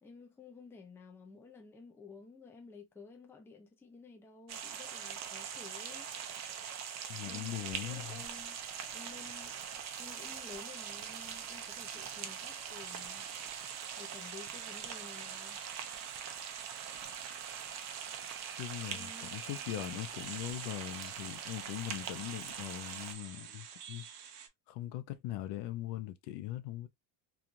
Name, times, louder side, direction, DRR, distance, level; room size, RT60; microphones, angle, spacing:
voice 1, 0.0-6.1 7.2-8.6 8.9-13.3 14.0-15.6 18.9-19.7, left 4 dB, 5° left, 0.4 m, -53 dB
sound 1, 4.5-23.1, right 8 dB, 40° right, 0.6 m, -43 dB
voice 2, 7.1-8.3 18.6-24.3 24.7-26.9, left 14 dB, 75° left, 0.6 m, -41 dB
sound 2, 12.8-24.5, right 8 dB, 70° right, 0.8 m, -49 dB
3.1 x 2.4 x 2.4 m
cardioid pair, 135°, 43 cm